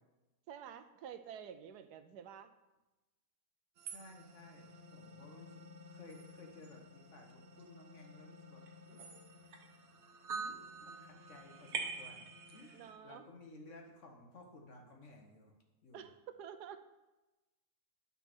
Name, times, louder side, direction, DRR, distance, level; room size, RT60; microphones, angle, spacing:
voice 1, 0.5-2.5 12.7-13.2 15.9-16.8, right 8 dB, 85° right, 10 dB, 1.2 m, -49 dB
voice 2, 3.8-9.3 10.3-15.5 15.8-16.1, left 2 dB, 50° left, 2 dB, 1.5 m, -57 dB
sound 1, 3.8-12.9, right 4 dB, 65° right, 1.3 m, -47 dB
9.2 x 4.2 x 6.1 m, 1.1 s
omnidirectional pair, 1.7 m